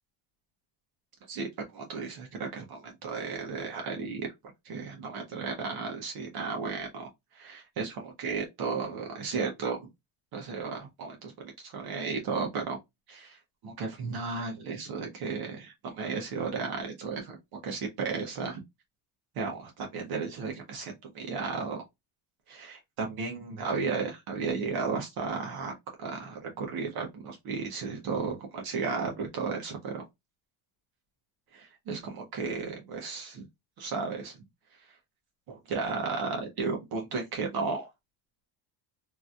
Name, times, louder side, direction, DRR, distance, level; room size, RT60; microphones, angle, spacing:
voice 1, 1.3-4.3 4.6-7.1 7.3-9.9 10.3-12.8 13.1-17.4 17.6-18.6 19.3-21.8 22.5-25.7 26.0-30.0 31.5-33.5 33.8-34.4 35.5-37.9, right 4 dB, 55° right, 1.0 m, -34 dB
3.0 x 2.7 x 2.3 m
cardioid pair, 135°, 44 cm